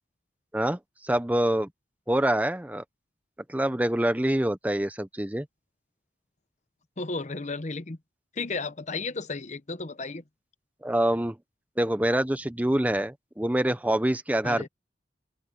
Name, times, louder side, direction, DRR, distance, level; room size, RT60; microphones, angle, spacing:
voice 1, 0.5-1.7 2.1-2.8 3.5-5.5 10.8-11.4 11.8-14.7, right 1 dB, 10° right, 0.7 m, -25 dB
voice 2, 7.0-8.0 8.4-10.2 14.4-14.7, left 3 dB, 40° left, 0.9 m, -33 dB
open air
head